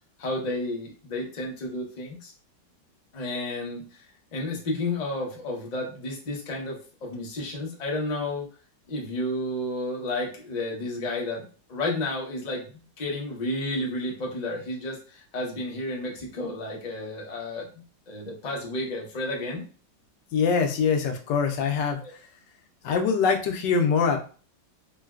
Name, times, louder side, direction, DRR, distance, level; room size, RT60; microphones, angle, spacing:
voice 1, 0.2-2.3 3.1-4.0 4.3-8.5 8.9-12.7 13.0-19.6 22.0-22.1, left 1 dB, 50° left, -1 dB, 0.4 m, -32 dB
voice 2, 20.3-22.3 22.8-24.2, left 5 dB, 75° left, 4 dB, 1.2 m, -24 dB
3.8 x 2.2 x 2.3 m, 0.39 s
omnidirectional pair, 2.0 m